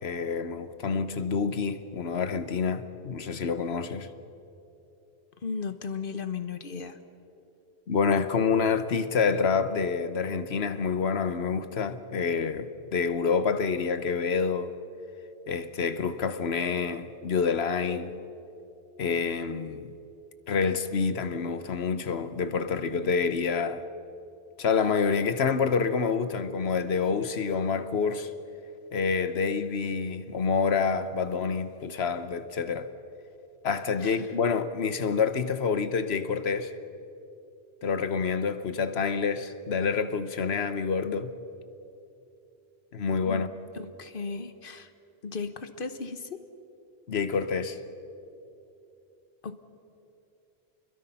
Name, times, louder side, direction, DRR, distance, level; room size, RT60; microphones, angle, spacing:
voice 1, 0.0-4.1 7.9-14.7 15.5-18.1 19.0-19.9 20.5-23.8 24.6-28.3 28.9-32.9 33.6-36.7 37.8-41.3 42.9-43.5 47.1-47.8, left 5 dB, 85° left, 1.3 m, -27 dB
voice 2, 5.4-7.0 34.0-34.3 43.2-43.4 43.7-44.9 45.2-46.4 49.4-49.6, left 5 dB, 60° left, 1.2 m, -36 dB
29.5 x 22.0 x 5.7 m
omnidirectional pair, 1.0 m